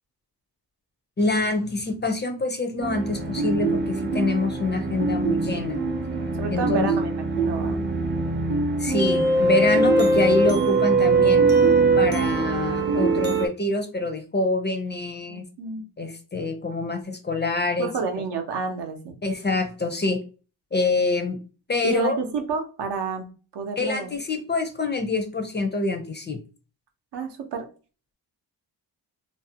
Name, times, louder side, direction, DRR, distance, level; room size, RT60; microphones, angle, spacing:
voice 1, 1.2-5.8 6.5-6.9 8.8-11.5 12.0-15.4 16.0-17.9 19.2-20.2 20.7-21.4 21.7-22.2 23.8-26.4, left 2 dB, 25° left, 5 dB, 0.4 m, -26 dB
sound 1, 2.8-13.5, right 3 dB, 25° right, 0.5 m, -22 dB
voice 2, 6.4-7.9 15.3-15.8 17.8-19.1 21.8-23.2 23.5-24.1 27.1-27.7, right 5 dB, 70° right, 5 dB, 0.7 m, -29 dB
2.5 x 2.0 x 2.7 m, 0.36 s
cardioid pair, 90°, 42 cm